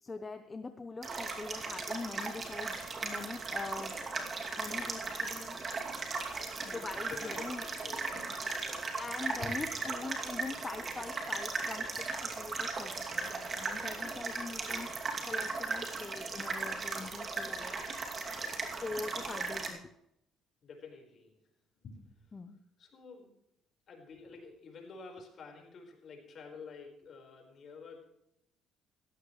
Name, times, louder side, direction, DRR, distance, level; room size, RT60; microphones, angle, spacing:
voice 1, 0.0-4.0 4.6-5.6 6.6-7.7 8.9-14.9 15.2-17.8 18.6-19.9 22.3-22.6, left 3 dB, 25° left, 9 dB, 0.8 m, -43 dB
sound 1, 1.0-19.7, right 4 dB, 40° right, 2.6 m, -37 dB
voice 2, 6.6-9.0 9.4-9.5 20.6-21.3 21.8-22.3 22.8-23.3 23.9-28.1, left 4 dB, 50° left, 2 dB, 4.7 m, -49 dB
17.0 x 14.5 x 3.2 m, 0.79 s
cardioid pair, 95°, 0 cm